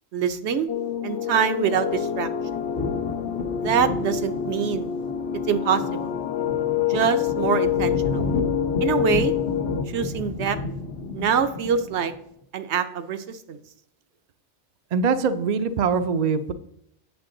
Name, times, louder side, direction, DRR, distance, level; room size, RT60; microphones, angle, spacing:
voice 1, 0.1-0.7 1.0-2.3 3.6-4.9 5.5-6.1 6.9-8.2 8.8-9.3 9.9-10.6 11.1-12.1 12.5-13.6, right 7 dB, 70° right, 10 dB, 0.9 m, -24 dB
sound 1, 0.7-9.8, left 9 dB, 75° left, 0.9 m, -27 dB
sound 2, 1.7-12.1, left 2 dB, 55° left, 1.0 m, -32 dB
voice 2, 14.9-16.5, right 5 dB, 50° right, 10 dB, 0.5 m, -23 dB
8.2 x 6.8 x 3.8 m, 0.75 s
omnidirectional pair, 1.2 m